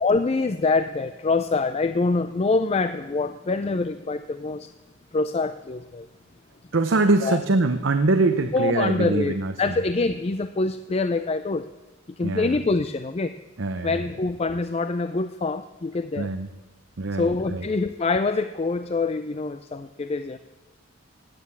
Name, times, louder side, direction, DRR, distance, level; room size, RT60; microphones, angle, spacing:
voice 1, 0.0-4.7 5.1-6.1 7.2-7.4 8.5-11.7 12.2-13.3 13.8-16.3 17.1-20.4, left 3 dB, 30° left, 11 dB, 0.4 m, -25 dB
voice 2, 6.7-9.5 12.2-12.6 13.6-13.9 16.2-16.5 17.0-17.6, right 2 dB, 60° right, 7 dB, 0.8 m, -23 dB
17.0 x 9.6 x 8.4 m, 1.2 s
head